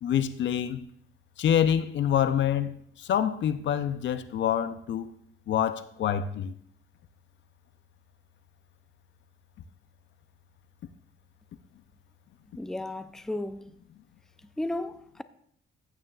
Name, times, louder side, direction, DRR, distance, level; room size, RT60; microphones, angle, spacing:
voice 1, 0.0-0.8 1.4-5.1 5.5-6.5, left 9 dB, 75° left, 0.6 m, -26 dB
voice 2, 12.5-13.7 14.4-15.2, left 1 dB, 5° left, 0.4 m, -34 dB
14.5 x 9.1 x 2.4 m
cardioid pair, 95°, 19 cm